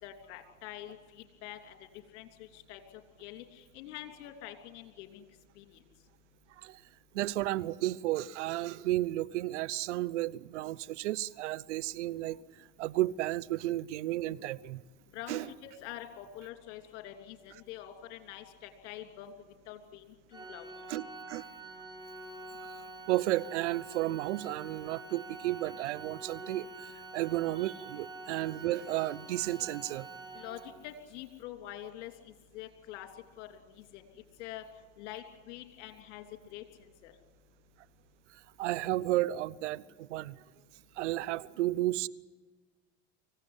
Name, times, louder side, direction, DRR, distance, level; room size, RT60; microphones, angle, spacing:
voice 1, 0.0-1.8 2.1-2.8 3.2-5.3 5.6-5.7 15.1-19.3 19.7-20.0 20.3-20.7 30.3-32.1 32.5-33.1 33.4-33.6 33.9-34.0 34.4-34.6 35.0-36.6 37.0-37.1, left 12 dB, 65° left, 3.2 m, -45 dB
voice 2, 7.1-14.8 15.3-15.5 20.9-21.4 22.7-30.1 38.3-40.4 41.0-42.1, right 16 dB, 75° right, 0.8 m, -33 dB
Organ, 20.3-31.0, right 2 dB, 10° right, 7.1 m, -47 dB
24.5 x 16.5 x 9.8 m
hypercardioid pair, 80°, 36 cm